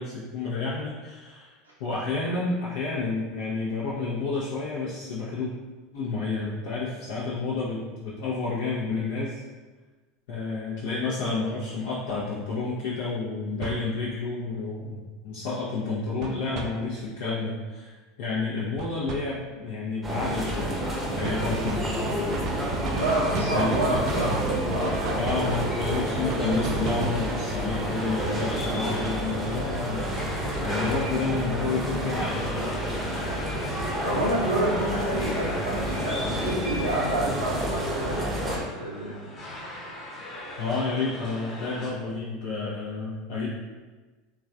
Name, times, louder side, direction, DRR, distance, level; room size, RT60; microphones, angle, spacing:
voice 1, 0.0-1.5 1.8-5.5 5.9-9.4 10.3-22.6 23.5-24.4 25.1-30.0 30.6-32.7 40.6-43.5, left 3 dB, 60° left, -6 dB, 0.6 m, -30 dB
sound 1, 12.1-12.2 13.6-13.8 16.2-16.7 18.8-19.2 21.2-27.2, right 4 dB, 45° right, 0.4 m, -33 dB
sound 2, 20.0-38.6, equal, 15° right, 0.8 m, -29 dB
voice 2, 22.9-25.6 34.0-39.2, right 1 dB, 85° right, -7 dB, 1.0 m, -29 dB
sound 3, 27.7-41.9, left 1 dB, 35° left, 1.0 m, -41 dB
3.4 x 3.2 x 2.3 m, 1.3 s
figure-of-eight pair, 75°, 0 cm